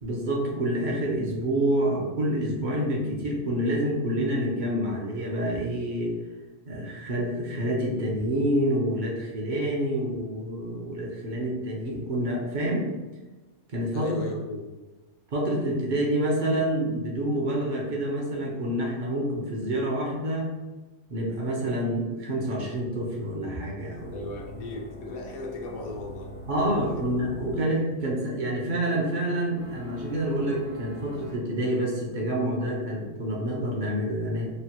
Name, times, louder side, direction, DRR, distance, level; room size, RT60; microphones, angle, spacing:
voice 1, 0.0-6.1 6.7-12.9 13.7-14.1 15.3-20.5 21.1-24.2 26.5-34.5, right 1 dB, 55° right, -2 dB, 0.6 m, -27 dB
voice 2, 13.9-14.6 24.1-26.9, left 2 dB, 80° left, 0 dB, 0.3 m, -37 dB
sound 1, 23.9-27.6 29.5-31.4, left 1 dB, 80° right, 1.2 m, -44 dB
3.1 x 2.2 x 2.7 m, 1.2 s
omnidirectional pair, 1.3 m